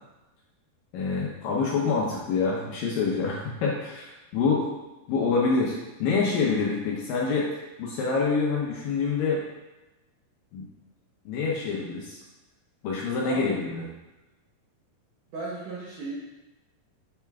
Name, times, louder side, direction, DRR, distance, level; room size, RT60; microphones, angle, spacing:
voice 1, 0.9-4.7 5.1-7.5 7.8-9.4 10.5-10.6 11.3-12.2 12.8-13.8, left 4 dB, 70° left, -4 dB, 2.3 m, -26 dB
voice 2, 13.2-13.6 15.3-16.1, right 3 dB, 70° right, -6 dB, 2.0 m, -35 dB
8.4 x 4.5 x 3.5 m, 1.0 s
omnidirectional pair, 4.8 m